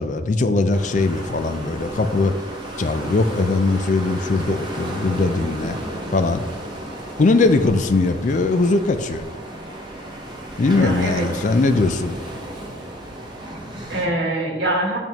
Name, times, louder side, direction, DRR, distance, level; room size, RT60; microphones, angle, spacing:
voice 1, 0.0-2.3 2.8-5.8 6.1-6.4 7.2-9.2 10.6-12.2, left 3 dB, 45° left, 9 dB, 0.4 m, -20 dB
sound 1, 0.7-14.1, right 1 dB, 25° right, 1.1 m, -33 dB
voice 2, 10.8-11.3 13.6-15.0, right 1 dB, 75° right, 0 dB, 1.2 m, -24 dB
10.5 x 3.6 x 3.0 m, 1.4 s
head